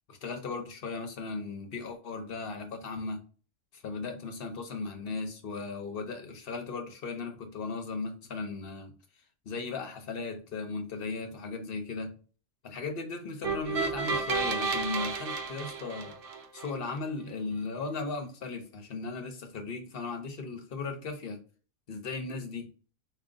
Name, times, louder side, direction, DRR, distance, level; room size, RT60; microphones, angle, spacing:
voice 1, 0.1-3.2 3.7-8.9 9.5-12.1 12.6-16.2 16.5-21.4 21.9-22.7, left 4 dB, 50° left, 0.9 m, -37 dB
sound 1, 13.4-16.7, right 4 dB, 55° right, 0.7 m, -32 dB
3.6 x 2.4 x 3.9 m
omnidirectional pair, 1.3 m